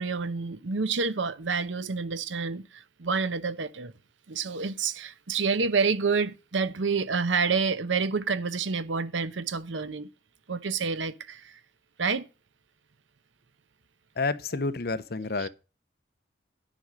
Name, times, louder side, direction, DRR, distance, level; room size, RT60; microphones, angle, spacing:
voice 1, 0.0-3.9 4.3-10.1 10.5-11.6 12.0-12.2 15.4-15.5, right 5 dB, 85° right, 0.8 m, -28 dB
voice 2, 14.2-15.5, left 3 dB, 55° left, 0.7 m, -29 dB
9.9 x 5.2 x 6.2 m
head